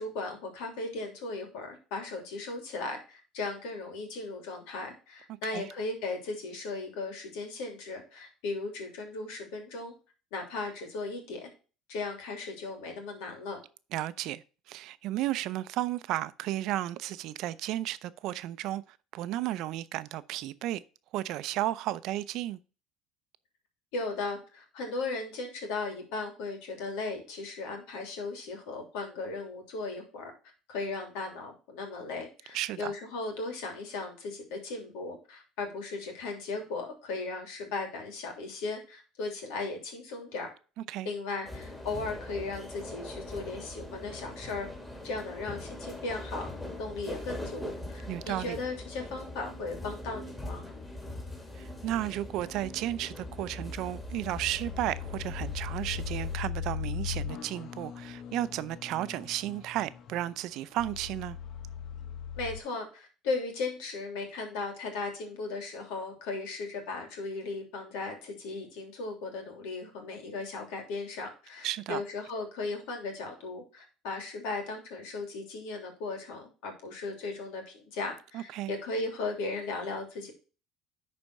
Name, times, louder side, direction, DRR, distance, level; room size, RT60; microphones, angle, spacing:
voice 1, 0.0-9.9 10.3-11.5 11.9-13.6 23.9-30.3 30.7-40.5 41.0-44.7 45.0-46.5 46.8-50.6 62.4-80.3, left 3 dB, 85° left, 3.0 m, -37 dB
voice 2, 13.9-20.8 21.1-22.6 32.5-32.9 40.9-41.1 48.1-48.6 51.6-61.4 71.6-72.0 78.3-78.7, right 14 dB, 65° right, 0.6 m, -33 dB
sound 1, 41.4-56.4, left 1 dB, 10° left, 2.7 m, -41 dB
sound 2, 53.2-62.6, left 8 dB, 55° left, 1.0 m, -39 dB
11.0 x 4.3 x 4.8 m
cardioid pair, 115°, 0 cm